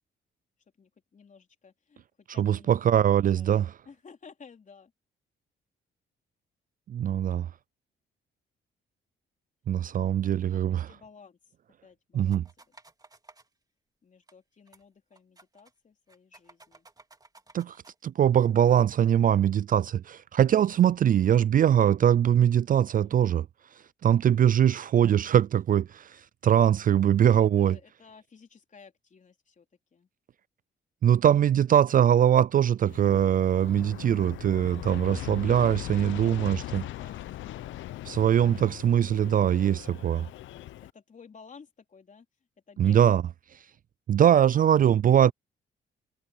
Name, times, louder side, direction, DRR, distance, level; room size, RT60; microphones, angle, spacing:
voice 1, 0.8-4.9 10.2-11.5 11.8-12.7 14.0-16.9 23.0-23.4 27.0-29.7 29.9-30.1 36.1-37.7 40.5-42.3 42.7-43.0, left 5 dB, 40° left, 3.9 m, -54 dB
voice 2, 2.4-3.7 6.9-7.5 9.7-10.9 12.1-12.4 17.5-17.8 18.0-23.5 24.0-27.8 31.0-36.8 38.1-40.3 42.8-43.2 44.1-45.3, right 10 dB, 45° right, 0.4 m, -22 dB
sound 1, 12.3-13.5 14.3-14.4 14.7-14.8 15.1-15.7 16.1-18.0, right 2 dB, 20° right, 3.6 m, -55 dB
Aircraft, 32.9-40.9, left 15 dB, 75° left, 0.7 m, -40 dB
cardioid pair, 90°, 20 cm